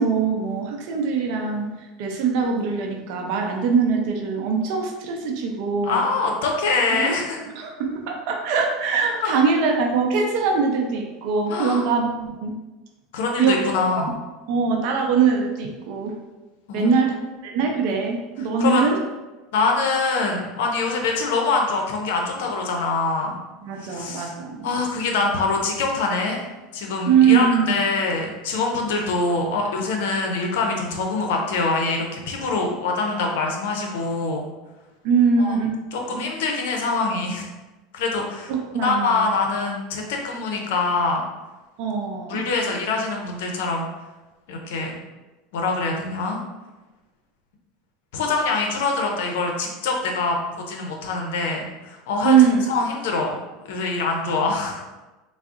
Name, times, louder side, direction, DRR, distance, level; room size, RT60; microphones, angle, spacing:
voice 1, 0.0-1.7 2.0-6.0 7.0-7.1 7.6-12.5 13.4-14.2 14.5-16.2 16.7-17.2 17.4-19.0 23.6-24.7 27.1-27.7 35.0-35.8 36.1-36.2 38.5-39.3 41.8-42.4 52.2-52.6, right 5 dB, 65° right, 1 dB, 0.5 m, -22 dB
voice 2, 5.8-7.4 9.2-9.4 11.5-11.8 13.1-14.1 16.7-16.9 18.6-18.9 19.5-23.4 23.8-24.3 24.6-26.4 26.7-34.4 35.4-35.6 35.9-37.5 37.9-41.2 42.3-43.8 44.5-44.9 45.5-46.4 48.1-52.3 52.7-53.3 53.7-54.8, left 3 dB, 80° left, 1 dB, 0.5 m, -24 dB
3.6 x 2.0 x 2.4 m, 1.1 s
supercardioid pair, 120°, 0 cm